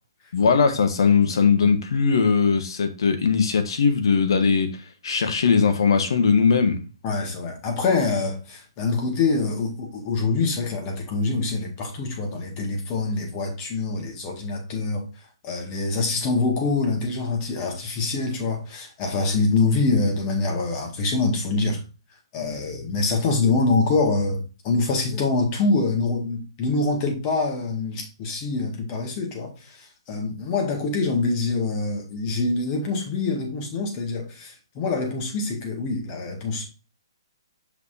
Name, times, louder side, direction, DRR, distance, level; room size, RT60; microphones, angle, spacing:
voice 1, 0.3-4.7 5.0-6.8, left 5 dB, 65° left, 1.3 m, -19 dB
voice 2, 7.0-15.1 15.4-21.8 22.3-36.7, left 3 dB, 30° left, 2.0 m, -25 dB
6.0 x 5.7 x 2.8 m
hypercardioid pair, 145°, 3 cm